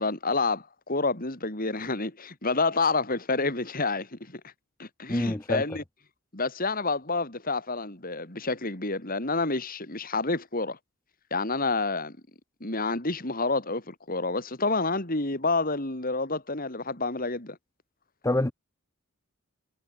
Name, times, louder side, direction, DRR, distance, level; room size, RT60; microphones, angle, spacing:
voice 1, 0.0-4.4 4.8-5.8 6.3-10.8 11.3-12.2 12.6-17.6, left 3 dB, 45° left, 3.8 m, -29 dB
voice 2, 5.1-5.6 18.2-18.5, left 1 dB, 15° left, 0.7 m, -26 dB
head